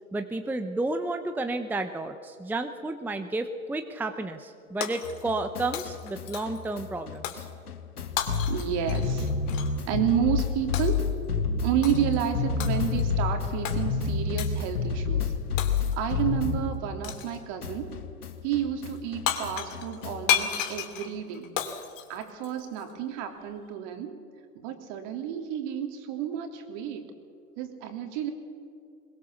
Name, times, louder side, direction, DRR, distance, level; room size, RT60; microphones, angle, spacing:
voice 1, 0.1-7.5, right 2 dB, 5° right, 7 dB, 0.9 m, -31 dB
Shatter, 4.8-5.5 5.7-6.7 7.2-7.5 8.2-9.7 10.7-11.1 11.8-12.2 12.6-13.1 13.6-13.8 14.4-14.7 15.6-16.1 17.0-17.4 19.0-19.1 19.3-22.8, left 10 dB, 55° left, 2.8 m, -33 dB
sound 1, 5.0-17.3 17.6-20.4, left 5 dB, 90° left, 1.7 m, -30 dB
voice 2, 8.5-9.3 9.9-11.0 11.6-15.3 15.9-17.9 18.4-21.5 22.1-24.1 24.5-27.1 27.6-28.3, right 10 dB, 50° right, 5 dB, 3.3 m, -30 dB
22.0 x 21.5 x 7.1 m, 2.3 s
hypercardioid pair, 105°, 44 cm